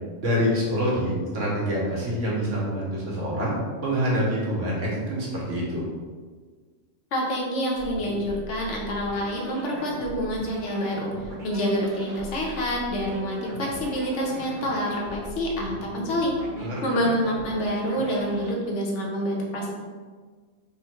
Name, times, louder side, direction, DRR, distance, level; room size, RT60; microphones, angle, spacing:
voice 1, 0.2-3.5 3.8-5.8 16.6-17.1, equal, 70° right, -5 dB, 1.4 m, -26 dB
voice 2, 7.1-11.1 11.4-19.7, equal, 65° left, -2 dB, 1.1 m, -27 dB
sound 1, 7.7-18.6, right 1 dB, 35° right, 0.8 m, -39 dB
3.7 x 2.1 x 4.3 m, 1.5 s
omnidirectional pair, 1.3 m